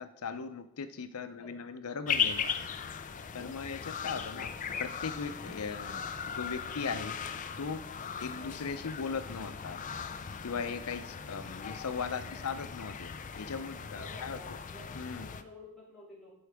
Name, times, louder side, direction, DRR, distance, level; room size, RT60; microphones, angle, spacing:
voice 1, 0.0-2.7 3.3-4.5 4.8-7.1 7.6-7.9 8.2-9.8 10.4-14.4 15.0-15.3, left 5 dB, 90° left, 11 dB, 0.6 m, -38 dB
voice 2, 1.3-1.6 4.4-4.6 12.3-12.5 14.0-16.3, left 2 dB, 5° left, -7 dB, 2.8 m, -52 dB
sound 1, 2.1-15.4, left 7 dB, 35° left, 0.4 m, -38 dB
Boat Water vehicle, 2.7-14.1, right 1 dB, 60° right, 1.3 m, -61 dB
12.0 x 4.7 x 3.5 m, 0.85 s
head